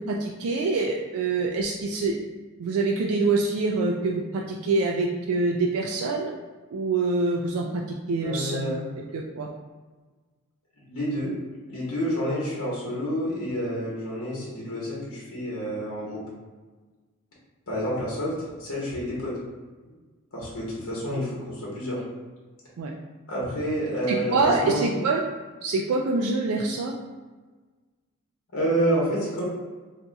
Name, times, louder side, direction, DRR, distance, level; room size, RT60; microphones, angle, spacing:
voice 1, 0.0-2.2 2.6-6.3 6.7-8.7 9.1-9.5 22.8-22.9 24.1-25.2 25.6-26.9, right 3 dB, 75° right, -1 dB, 0.3 m, -25 dB
voice 2, 8.2-8.8 10.9-11.3 11.7-16.2 17.7-18.3 18.6-19.3 20.3-22.0 23.3-24.8 28.5-29.4, equal, 80° left, -6 dB, 1.1 m, -28 dB
2.7 x 2.3 x 3.9 m, 1.3 s
head